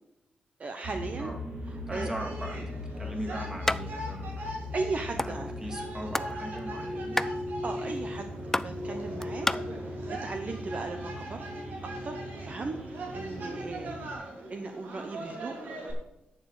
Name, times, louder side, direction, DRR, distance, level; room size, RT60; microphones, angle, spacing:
voice 1, 0.6-1.3 1.7-2.1 4.7-5.5 7.6-8.3 8.6-9.5 9.9-11.4 11.8-15.5, right 3 dB, 45° right, 5 dB, 0.8 m, -37 dB
sound 1, 0.8-14.1, left 1 dB, 65° right, 3.3 m, -38 dB
voice 2, 1.9-4.6 5.2-7.3, right 1 dB, 15° right, 0 dB, 2.6 m, -39 dB
sound 2, 1.9-15.9, right 2 dB, 80° right, 2.8 m, -42 dB
sound 3, 3.6-3.8 4.1-4.2 4.5-5.3 5.8-6.4 6.6-9.6, left 1 dB, 10° left, 0.3 m, -30 dB
10.5 x 7.2 x 4.9 m, 0.92 s
cardioid pair, 100°, 3 cm